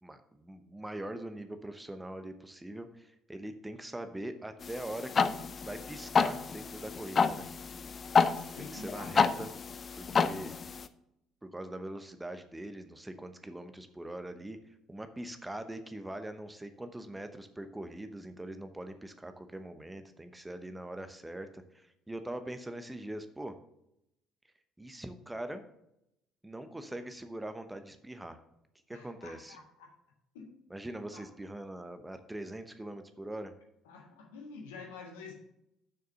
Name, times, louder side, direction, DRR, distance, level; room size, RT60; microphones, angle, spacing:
voice 1, 0.0-5.4 5.7-7.5 8.6-9.5 10.0-10.7 11.4-23.5 24.8-25.6 26.4-28.4 28.9-29.6 30.7-33.5, right 1 dB, 10° right, 9 dB, 0.9 m, -42 dB
sound 1, 4.6-10.9, left 5 dB, 40° left, 0.5 m, -30 dB
voice 2, 8.3-9.2 28.9-29.9 30.3-30.6 31.1-31.2 33.8-35.4, left 4 dB, 75° left, 1 dB, 1.7 m, -48 dB
7.0 x 6.4 x 5.6 m, 0.82 s
figure-of-eight pair, 55°, 0 cm